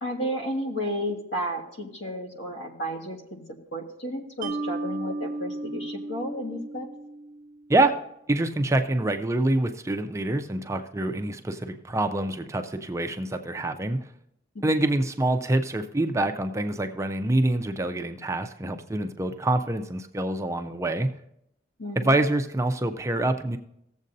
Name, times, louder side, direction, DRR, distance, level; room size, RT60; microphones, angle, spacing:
voice 1, 0.0-3.4 3.7-6.9 14.5-14.9 21.8-22.1, equal, 75° left, 2 dB, 1.6 m, -32 dB
Mallet percussion, 4.4-7.7, right 2 dB, 45° right, 0.8 m, -34 dB
voice 2, 8.3-14.0 14.6-21.1 22.0-23.6, right 2 dB, 15° right, 6 dB, 0.4 m, -26 dB
17.0 x 7.4 x 2.7 m, 0.79 s
head